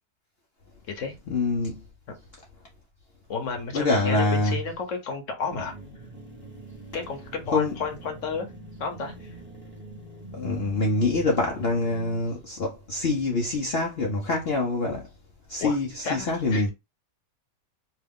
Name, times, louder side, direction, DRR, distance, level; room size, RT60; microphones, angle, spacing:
voice 1, 1.3-1.8 3.7-4.6 7.5-7.7 10.3-15.0 15.5-16.7, left 2 dB, 80° left, 0.5 m, -25 dB
voice 2, 3.3-5.7 6.9-8.5 8.8-9.3 15.6-15.8 16.0-16.7, left 5 dB, 60° left, 0.9 m, -32 dB
sound 1, 5.5-12.3, right 2 dB, 10° right, 0.6 m, -43 dB
3.0 x 2.3 x 3.5 m
omnidirectional pair, 1.9 m